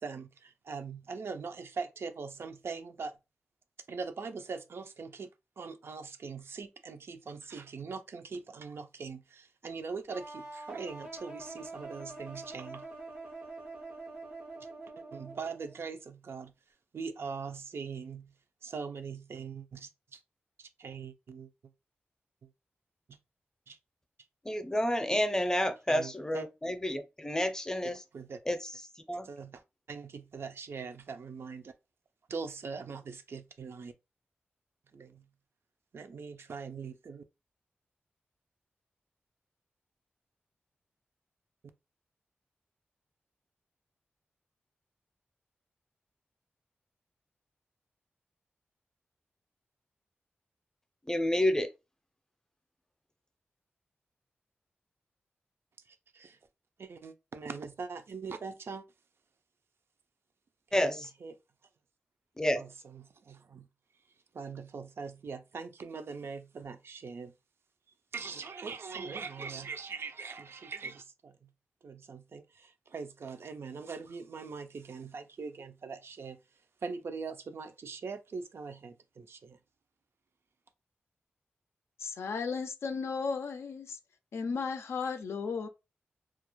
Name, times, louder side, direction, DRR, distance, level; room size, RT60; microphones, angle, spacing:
voice 1, 0.0-3.1 3.9-5.3 5.6-12.9 15.1-16.5 16.9-18.3 18.6-20.2 20.6-21.5 23.1-23.2 23.7-23.8 25.9-26.4 28.1-28.4 29.2-29.6 29.9-31.7 32.3-33.9 34.9-35.2 35.9-37.2 55.9-56.4 56.8-58.9 60.8-61.4 62.6-63.7 64.3-67.3 68.1-71.5 71.8-76.4 76.8-79.6, right 5 dB, 70° right, 0.4 m, -42 dB
sound 1, 10.1-15.9, right 2 dB, 90° right, 0.9 m, -45 dB
voice 2, 24.4-28.0 28.5-28.7 29.1-29.3 51.1-51.7 60.7-61.1 62.4-62.6, left 1 dB, 15° left, 0.5 m, -29 dB
voice 3, 82.0-84.0 84.3-85.7, left 5 dB, 85° left, 0.3 m, -35 dB
2.3 x 2.0 x 2.9 m
cardioid pair, 45°, 4 cm